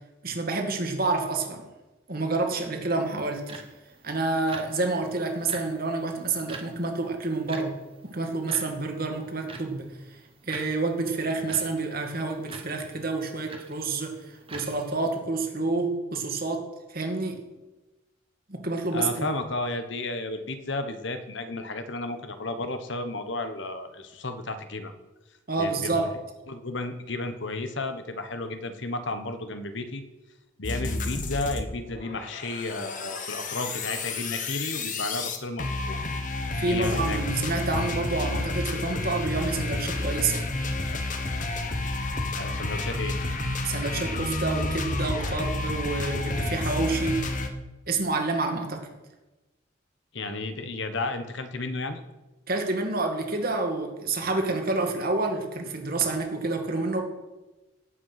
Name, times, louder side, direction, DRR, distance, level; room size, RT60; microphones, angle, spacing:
voice 1, 0.2-1.7 2.1-3.6 4.0-7.8 8.0-9.9 10.5-17.4 18.5-19.3 25.5-26.1 36.5-40.4 43.6-47.3 47.9-48.9 52.5-57.0, right 3 dB, 45° right, 3 dB, 2.3 m, -28 dB
sound 1, 3.0-15.2, right 4 dB, 25° right, 1.5 m, -46 dB
voice 2, 18.9-24.9 25.6-26.1 26.5-30.0 30.6-36.0 36.6-37.2 37.7-38.0 42.3-43.2 50.1-52.0, left 2 dB, 60° left, 8 dB, 1.3 m, -33 dB
sound 2, 30.6-31.6 31.9-47.5, left 2 dB, 40° left, 1.3 m, -30 dB
17.5 x 8.2 x 5.9 m, 1.1 s
head